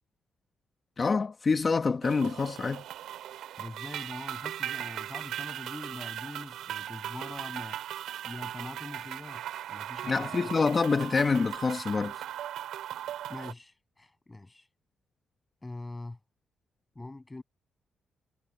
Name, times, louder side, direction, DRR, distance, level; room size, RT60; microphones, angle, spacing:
voice 1, 1.0-2.8 10.1-12.1, left 4 dB, 35° left, 1.4 m, -26 dB
sound 1, 2.0-13.5, right 12 dB, 85° right, 4.7 m, -38 dB
voice 2, 3.6-7.8 8.2-9.4 9.7-10.5 13.3-14.7 15.6-16.2 16.9-17.4, left 2 dB, 15° left, 6.8 m, -43 dB
cardioid pair, 90°, 0 cm